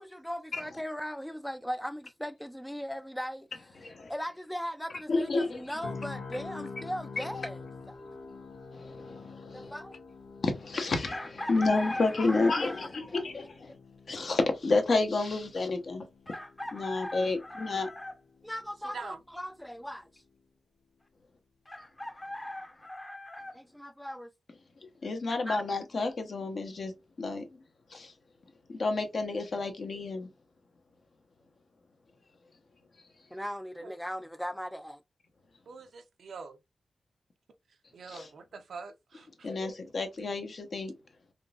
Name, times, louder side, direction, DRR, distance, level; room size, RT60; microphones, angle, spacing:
voice 1, 0.0-3.5 4.1-8.0 9.5-10.0 12.2-12.4 13.1-13.2 18.4-20.1 23.5-24.3 25.3-25.6 33.3-35.0, equal, 5° left, 0.3 m, -38 dB
voice 2, 3.8-4.1 5.1-5.6 7.2-7.5 8.7-9.7 10.4-13.7 14.1-16.0 16.7-17.9 25.0-26.9 27.2-27.6 27.9-28.1 28.7-30.3 38.1-38.3 39.4-40.9, left 3 dB, 60° left, 0.9 m, -30 dB
sound 1, 5.8-19.8 20.2-20.4, left 4 dB, 90° left, 1.0 m, -47 dB
Chicken rooster, 11.1-13.0 14.7-14.8 16.3-18.2 21.7-23.5, left 1 dB, 20° left, 0.7 m, -39 dB
voice 3, 35.7-36.6 37.9-39.5, right 4 dB, 75° right, 0.5 m, -44 dB
3.6 x 2.8 x 2.4 m
cardioid pair, 85°, 0 cm